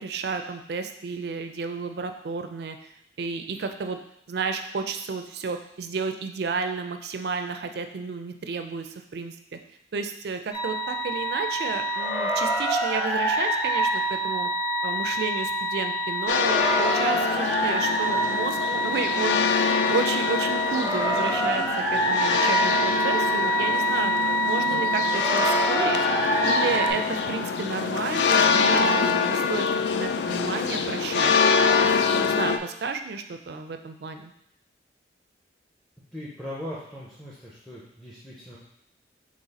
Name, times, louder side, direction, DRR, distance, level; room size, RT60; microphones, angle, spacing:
voice 1, 0.0-2.9 3.2-4.0 4.3-9.6 9.9-14.5 14.8-21.6 21.9-24.1 24.5-26.0 26.4-31.3 31.8-34.3, right 4 dB, 60° right, 7 dB, 0.4 m, -32 dB
sound 1, 10.5-26.9, right 1 dB, 20° left, 0.9 m, -26 dB
sound 2, 16.3-32.6, left 5 dB, 70° left, 0.3 m, -25 dB
voice 2, 36.1-38.6, left 1 dB, ahead, -6 dB, 0.5 m, -39 dB
4.0 x 3.1 x 4.0 m, 0.76 s
head